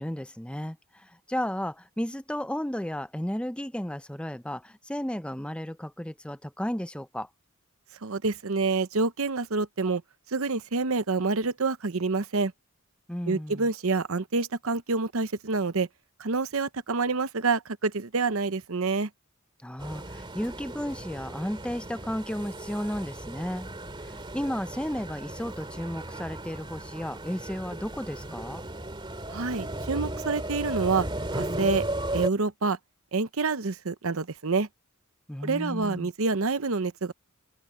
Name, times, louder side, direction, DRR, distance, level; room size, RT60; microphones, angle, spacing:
voice 1, 0.0-7.3 13.1-13.7 19.6-23.8 24.1-28.6 35.3-36.1, equal, 5° left, 0.8 m, -33 dB
voice 2, 8.0-10.0 10.3-12.5 13.3-15.9 16.2-19.1 29.3-31.1 31.3-31.9 32.1-32.8 33.1-34.7 35.4-37.1, right 4 dB, 65° right, 0.9 m, -27 dB
sound 1, 19.8-32.3, right 1 dB, 20° right, 2.6 m, -35 dB
head